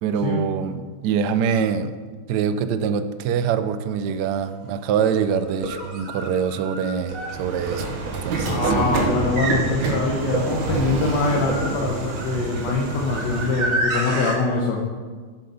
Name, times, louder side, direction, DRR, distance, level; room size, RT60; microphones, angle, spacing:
voice 1, 0.0-1.9 2.3-8.7, right 7 dB, 70° right, 11 dB, 1.1 m, -24 dB
sound 1, 4.3-4.4 5.5-14.4, right 2 dB, 50° right, 1.5 m, -31 dB
Train / Sliding door, 7.2-13.8, right 4 dB, 85° right, 1.9 m, -27 dB
voice 2, 8.4-14.8, left 3 dB, 70° left, 0 dB, 1.5 m, -24 dB
7.9 x 6.6 x 5.5 m, 1.5 s
omnidirectional pair, 2.0 m